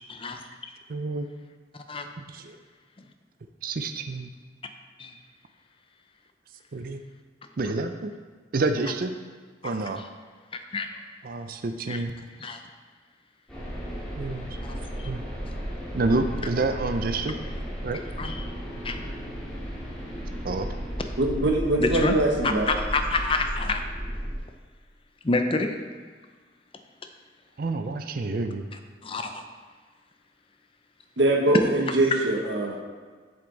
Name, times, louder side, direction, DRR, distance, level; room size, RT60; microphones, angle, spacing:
voice 1, 0.9-1.3 2.2-2.6 3.6-4.3 6.7-7.0 7.6-8.1 8.5-9.1 9.6-10.0 11.2-12.1 14.2-14.6 15.0-15.2 15.9-17.4 17.8-18.0 20.4-20.7 27.6-28.7, right 3 dB, 50° right, 7 dB, 0.4 m, -28 dB
voice 2, 10.5-11.0 11.9-12.0 12.4-12.6 14.6-14.7 15.0-15.1 18.2-18.5 18.8-19.1 21.8-22.2 22.4-23.8 25.2-25.8 29.0-29.4 32.1-32.2, left 3 dB, 30° left, 6 dB, 0.6 m, -28 dB
sound 1, 13.5-24.4, equal, 5° left, 2.0 m, -34 dB
voice 3, 21.2-22.7 31.2-32.8, right 2 dB, 75° right, 1 dB, 1.4 m, -23 dB
7.8 x 7.0 x 4.0 m, 1.5 s
head